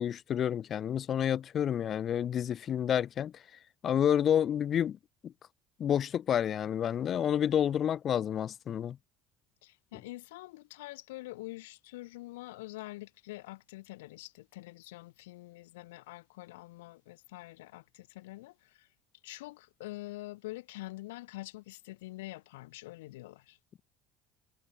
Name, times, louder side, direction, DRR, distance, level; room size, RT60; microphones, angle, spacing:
voice 1, 0.0-3.3 3.8-5.0 5.8-9.0, left 9 dB, 45° left, 1.2 m, -29 dB
voice 2, 9.6-18.9 19.2-23.6, left 19 dB, 85° left, 3.8 m, -45 dB
supercardioid pair, 85°, 0 cm